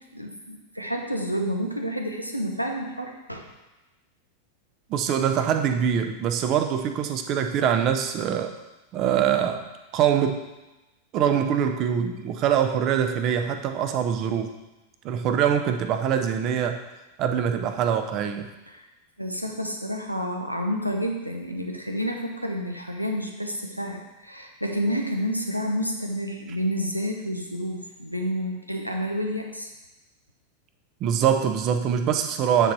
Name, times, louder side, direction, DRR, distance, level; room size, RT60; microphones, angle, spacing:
voice 1, 0.0-3.5 18.7-18.9 19.2-29.7, equal, 90° right, 3 dB, 0.8 m, -29 dB
voice 2, 4.9-8.5 8.9-9.6 9.9-10.4 11.1-14.5 15.0-16.8 17.2-18.5 31.0-32.7, right 8 dB, 35° right, 7 dB, 0.7 m, -24 dB
9.1 x 4.0 x 4.6 m, 1.0 s
figure-of-eight pair, 90°, 0 cm